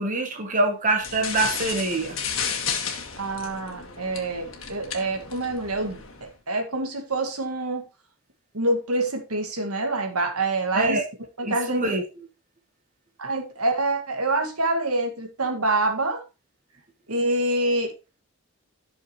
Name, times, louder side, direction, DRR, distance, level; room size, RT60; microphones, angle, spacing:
voice 1, 0.0-2.2 10.7-11.0 11.4-12.0, right 2 dB, 35° right, 1.2 m, -24 dB
sound 1, 1.0-6.3, left 7 dB, 65° left, 1.7 m, -33 dB
voice 2, 3.2-7.8 8.5-11.0 11.4-11.8 13.2-16.2 17.1-17.9, right 2 dB, 85° right, 2.0 m, -26 dB
11.5 x 6.4 x 3.1 m
head